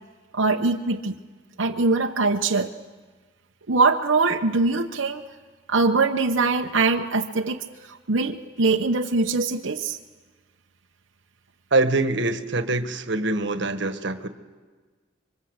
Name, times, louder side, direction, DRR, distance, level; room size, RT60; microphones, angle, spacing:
voice 1, 0.3-1.2 1.6-2.7 3.7-5.2 5.7-10.0, right 3 dB, 85° right, 1 dB, 1.0 m, -22 dB
voice 2, 11.7-14.3, right 2 dB, 65° right, 9 dB, 1.5 m, -24 dB
27.0 x 24.0 x 8.1 m, 1.4 s
head